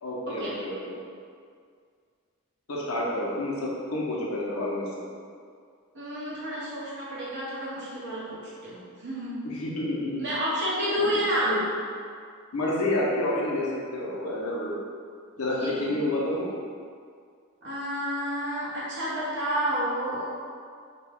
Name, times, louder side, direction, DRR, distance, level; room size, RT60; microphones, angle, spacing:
voice 1, 0.0-1.0 2.7-4.9 9.4-10.2 11.0-11.1 12.5-14.8 15.4-16.5, left 1 dB, 70° left, -4 dB, 0.6 m, -29 dB
voice 2, 5.9-9.5 10.2-11.8 15.6-16.0 17.6-20.2, equal, 55° right, -10 dB, 1.0 m, -30 dB
2.8 x 2.3 x 3.4 m, 2.1 s
head